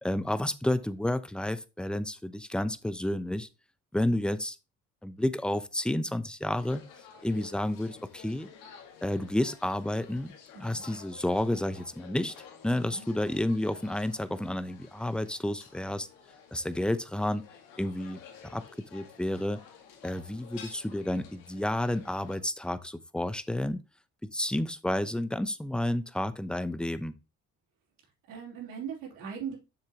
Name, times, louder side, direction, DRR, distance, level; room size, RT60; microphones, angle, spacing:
voice 1, 0.0-3.5 3.9-4.6 5.0-6.8 7.2-8.5 9.0-10.3 10.6-12.3 12.6-16.1 16.5-17.4 17.8-18.6 18.9-19.6 20.0-23.8 24.3-27.1, left 1 dB, 5° left, 0.7 m, -30 dB
sound 1, 6.6-22.4, left 7 dB, 85° left, 1.8 m, -52 dB
voice 2, 10.5-10.9 12.7-13.1 28.3-29.6, right 7 dB, 85° right, 3.1 m, -40 dB
7.0 x 6.8 x 2.9 m
supercardioid pair, 70°, 32 cm